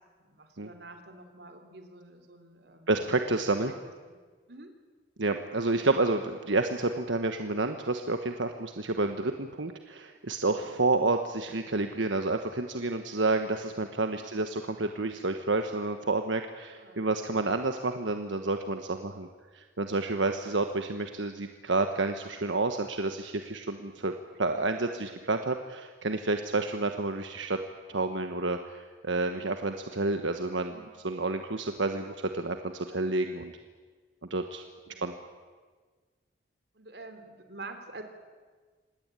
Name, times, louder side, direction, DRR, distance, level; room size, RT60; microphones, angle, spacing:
voice 1, 0.2-3.0 3.4-3.5 4.1-4.2 4.5-4.7 8.4-8.6 14.0-14.3 16.7-17.1 20.4-20.6 24.5-24.8 30.7-30.9 34.9-35.1 36.7-38.0, right 3 dB, 65° right, 7 dB, 3.4 m, -48 dB
voice 2, 2.9-3.7 5.2-19.3 19.5-24.1 24.4-27.6 27.9-33.5 34.3-34.6 35.0-35.1, right 2 dB, 90° right, 6 dB, 1.4 m, -29 dB
26.5 x 19.5 x 9.1 m, 1.5 s
head